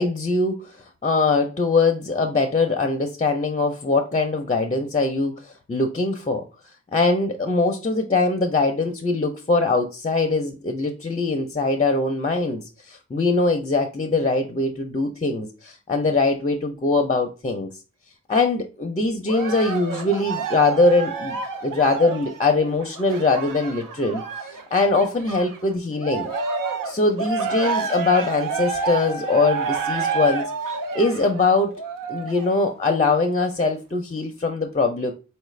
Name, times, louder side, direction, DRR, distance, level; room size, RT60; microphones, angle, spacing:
voice 1, 0.0-6.4 6.9-17.7 18.3-26.3 26.8-30.5 30.9-31.7 32.1-35.1, left 3 dB, 25° left, 0.5 m, -22 dB
Cheering, 19.3-25.6 26.0-32.6 33.2-33.3, right 5 dB, 85° right, 0.6 m, -29 dB
4.4 x 2.4 x 3.1 m
wide cardioid pair, 120°, 32 cm